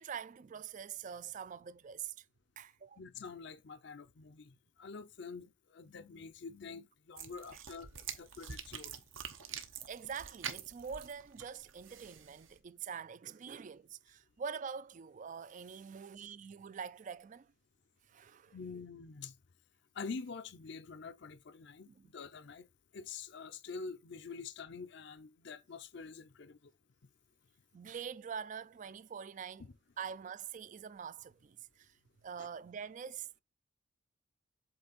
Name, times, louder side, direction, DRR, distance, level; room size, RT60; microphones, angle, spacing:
voice 1, 0.0-2.3 2.6-3.0 7.5-7.6 9.9-17.5 18.1-18.6 21.9-22.1 27.7-29.6 30.0-32.0 32.2-33.3, right 7 dB, 40° right, 0.3 m, -45 dB
voice 2, 3.0-8.9 18.5-19.3 19.9-22.7 22.9-26.7 32.4-32.5, left 5 dB, 60° left, 0.6 m, -46 dB
sound 1, 7.2-12.6, right 8 dB, 75° right, 1.0 m, -46 dB
7.9 x 3.3 x 4.1 m
head